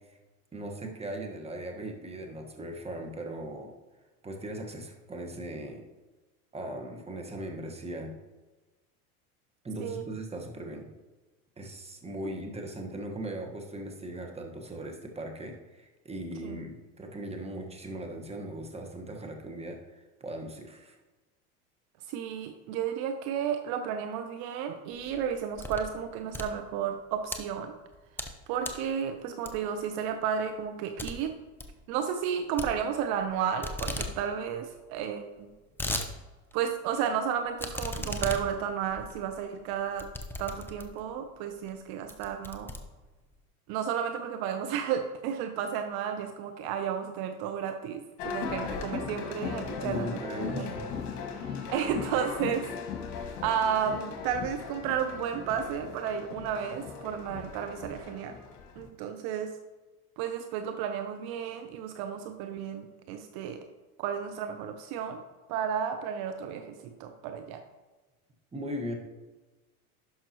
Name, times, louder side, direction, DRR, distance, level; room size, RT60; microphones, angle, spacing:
voice 1, 0.5-3.7 4.2-5.8 6.5-8.1 9.6-10.9 11.6-21.0 49.8-50.9 68.5-68.9, right 1 dB, 15° right, 2 dB, 1.4 m, -39 dB
voice 2, 22.1-27.7 28.5-31.4 31.9-35.5 36.5-40.1 40.4-42.7 43.7-50.2 50.6-50.7 51.4-52.7 53.4-58.4 58.8-59.5 60.2-63.6 64.0-65.2 65.5-67.6, right 8 dB, 55° right, 7 dB, 0.8 m, -32 dB
sound 1, 25.0-25.9 26.2-27.4 27.9-28.3 28.6-28.9 29.4-29.8 30.2-30.3 30.6-30.7 31.0-31.1 31.4-31.7 32.6-33.3 33.6-34.1 34.5-34.6 34.7-34.8 35.4-36.1 36.5-36.6 37.6-41.1 41.6-41.8 42.1-43.3, left 2 dB, 5° left, 0.7 m, -37 dB
sound 2, 48.2-58.9, left 6 dB, 60° left, 1.7 m, -38 dB
11.0 x 5.8 x 3.0 m, 1.2 s
hypercardioid pair, 100°, 44 cm